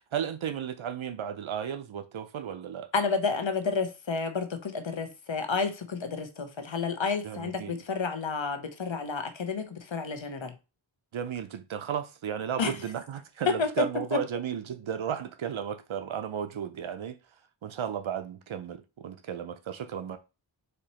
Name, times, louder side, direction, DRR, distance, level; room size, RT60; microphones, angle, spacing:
voice 1, 0.0-2.9 7.2-7.8 11.1-17.2 17.6-20.2, right 8 dB, 80° right, 0.6 m, -34 dB
voice 2, 2.9-10.5 12.6-12.7 13.5-13.9 14.1-14.2, left 4 dB, 70° left, 0.9 m, -30 dB
4.3 x 2.8 x 4.2 m
wide cardioid pair, 55°, 47 cm